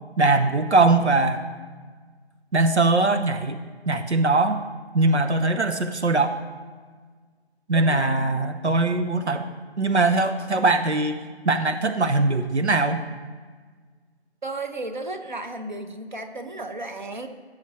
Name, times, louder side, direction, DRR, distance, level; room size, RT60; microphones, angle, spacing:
voice 1, 0.2-1.4 2.5-3.6 3.9-4.6 4.9-6.4 7.7-9.5 9.8-11.2 11.4-13.0, right 3 dB, 90° right, 8 dB, 0.9 m, -21 dB
voice 2, 7.7-8.4 14.4-17.3, right 2 dB, 45° right, 7 dB, 1.0 m, -34 dB
16.0 x 7.3 x 3.1 m, 1.5 s
figure-of-eight pair, 165°, 33 cm